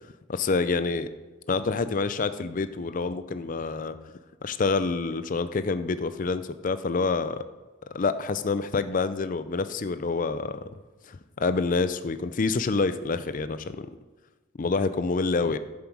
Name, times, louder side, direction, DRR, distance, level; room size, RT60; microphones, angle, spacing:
voice 1, 0.3-1.1 1.5-4.0 4.4-7.4 7.9-10.6 11.1-13.9 14.6-15.6, left 4 dB, 40° left, 12 dB, 0.5 m, -27 dB
11.0 x 7.6 x 4.7 m, 1.2 s
head